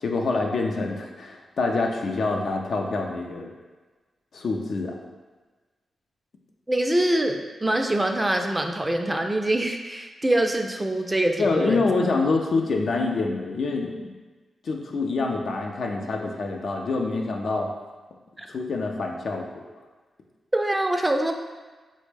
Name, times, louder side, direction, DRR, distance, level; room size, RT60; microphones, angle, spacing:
voice 1, 0.0-3.5 4.3-5.0 11.4-14.1 14.6-17.7 18.5-19.7, left 3 dB, 65° left, 1 dB, 0.4 m, -26 dB
voice 2, 6.7-11.9 18.4-18.5 20.5-21.3, right 1 dB, 20° right, 4 dB, 0.3 m, -24 dB
3.4 x 2.0 x 3.2 m, 1.3 s
supercardioid pair, 45°, 0 cm